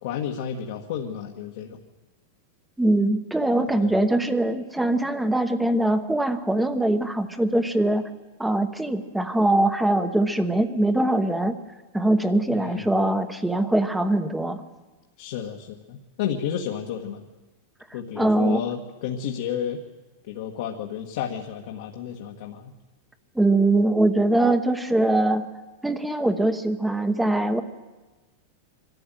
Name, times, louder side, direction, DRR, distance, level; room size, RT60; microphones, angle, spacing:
voice 1, 0.0-1.8 3.8-3.9 12.5-12.9 15.2-17.2 17.9-19.8 20.3-22.7, left 8 dB, 65° left, 1 dB, 1.7 m, -31 dB
voice 2, 2.8-8.0 8.4-11.6 11.9-14.6 18.1-18.6 23.3-25.5 25.8-27.6, right 1 dB, 5° right, 9 dB, 1.1 m, -22 dB
23.0 x 13.0 x 9.2 m, 1.2 s
supercardioid pair, 135°, 0 cm